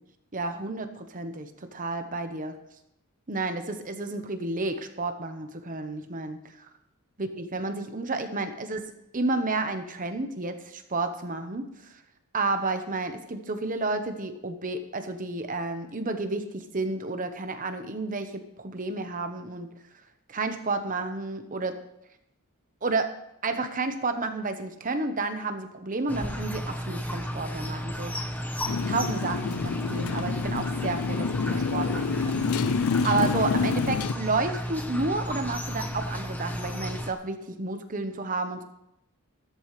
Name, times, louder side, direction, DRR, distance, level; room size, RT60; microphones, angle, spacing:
voice 1, 0.3-2.6 3.3-6.4 7.2-8.9 9.1-11.6 11.9-12.0 12.3-19.7 20.3-21.8 22.8-23.1 23.4-28.1 28.8-38.6, right 3 dB, 35° right, 7 dB, 1.0 m, -31 dB
sound 1, 26.1-37.1, equal, 10° left, 0.9 m, -33 dB
Motorcycle, 28.7-34.1, left 5 dB, 75° left, 0.4 m, -28 dB
14.0 x 13.5 x 3.3 m, 0.83 s
head